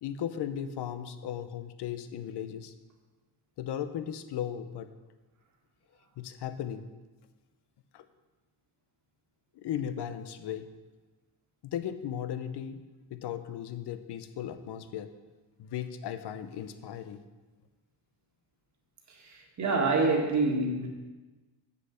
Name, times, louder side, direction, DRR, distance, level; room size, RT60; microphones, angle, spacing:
voice 1, 0.0-2.7 3.6-4.9 6.2-6.8 7.9-8.0 9.5-10.7 11.6-12.8 13.1-15.1 15.6-17.3, left 9 dB, 65° left, 10 dB, 0.8 m, -36 dB
voice 2, 19.2-20.9, right 3 dB, 40° right, 0 dB, 1.7 m, -27 dB
7.5 x 6.8 x 5.7 m, 1.2 s
cardioid pair, 120°, 44 cm